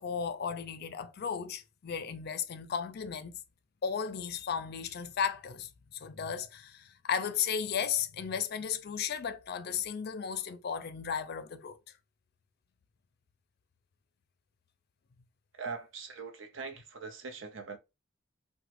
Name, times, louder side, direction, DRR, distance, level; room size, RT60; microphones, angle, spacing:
voice 1, 0.0-3.4 3.8-11.8, left 7 dB, 50° left, 0.4 m, -35 dB
voice 2, 15.5-17.8, right 4 dB, 70° right, 0.7 m, -42 dB
3.0 x 2.1 x 2.9 m
head